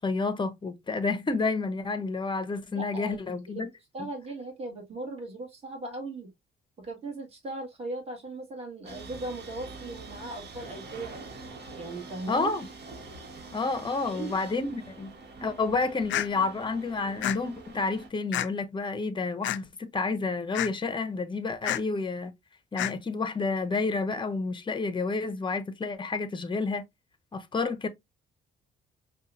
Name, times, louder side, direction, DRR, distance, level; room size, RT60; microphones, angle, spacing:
voice 1, 0.0-3.7 12.3-12.7 13.5-15.1 15.4-22.3 22.7-26.8 27.3-27.9, left 3 dB, 25° left, 0.7 m, -30 dB
voice 2, 2.7-3.2 3.5-3.7 3.9-6.3 6.8-11.2 11.8-12.5 14.0-14.5, right 2 dB, 30° right, 1.8 m, -38 dB
sound 1, 8.8-18.1, right 3 dB, 55° right, 1.4 m, -45 dB
sound 2, 16.1-16.3 17.2-17.4 18.3-18.5 19.4-19.6 20.5-20.7 21.6-21.8 22.8-22.9, left 13 dB, 70° left, 0.4 m, -28 dB
5.4 x 2.3 x 2.6 m
cardioid pair, 90°, 20 cm